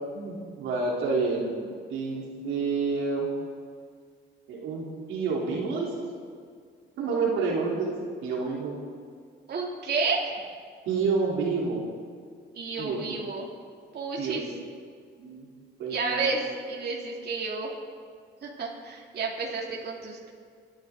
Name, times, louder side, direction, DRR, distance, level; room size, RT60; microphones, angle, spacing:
voice 1, 0.1-3.3 4.5-5.9 7.0-7.9 8.2-8.8 10.9-11.8 12.8-13.1 14.2-14.4 15.2-15.5 15.8-16.3, right 4 dB, 85° right, -3 dB, 3.5 m, -29 dB
voice 2, 9.5-10.3 12.5-13.5 13.9-14.4 15.9-17.7 18.4-20.3, right 4 dB, 55° right, -2 dB, 2.8 m, -31 dB
28.5 x 11.5 x 3.8 m, 2.1 s
cardioid pair, 90°, 20 cm